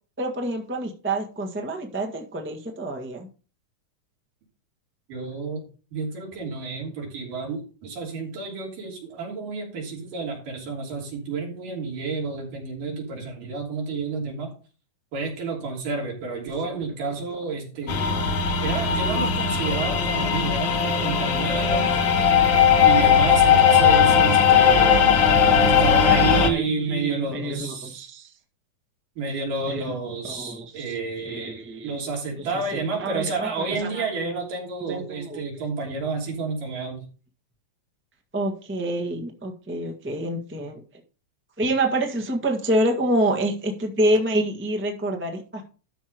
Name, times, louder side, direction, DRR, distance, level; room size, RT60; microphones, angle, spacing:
voice 1, 0.2-3.3 20.5-21.3 21.9-22.3 23.5-25.6 26.0-28.3 29.7-29.9 30.2-30.9 31.2-32.0 32.4-34.0 34.9-35.4 38.3-40.8 41.6-45.7, right 1 dB, 10° right, 2 dB, 0.5 m, -28 dB
voice 2, 5.1-5.6 5.9-14.5 15.1-18.1 18.6-22.0 22.8-28.1 29.2-37.1, right 4 dB, 80° right, -1 dB, 4.8 m, -30 dB
sound 1, 17.9-26.5, left 7 dB, 85° left, 1.0 m, -18 dB
12.5 x 4.8 x 5.2 m, 0.37 s
omnidirectional pair, 3.7 m